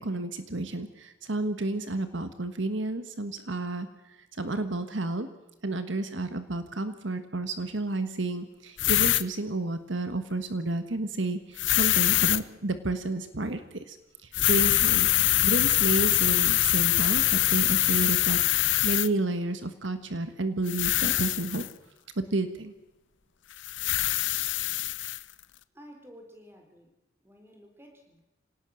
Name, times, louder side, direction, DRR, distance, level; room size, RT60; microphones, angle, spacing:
voice 1, 0.0-5.3 5.6-14.0 14.2-15.1 15.4-21.7 22.2-22.7, right 2 dB, 70° right, 9 dB, 1.5 m, -31 dB
sound 1, 8.8-9.2 11.6-12.4 14.3-19.1 20.7-21.7 23.6-25.2, left 15 dB, 65° left, 0.8 m, -24 dB
voice 2, 25.7-26.9 27.2-28.2, equal, 10° right, 3 dB, 4.1 m, -51 dB
26.0 x 18.0 x 6.5 m, 0.99 s
head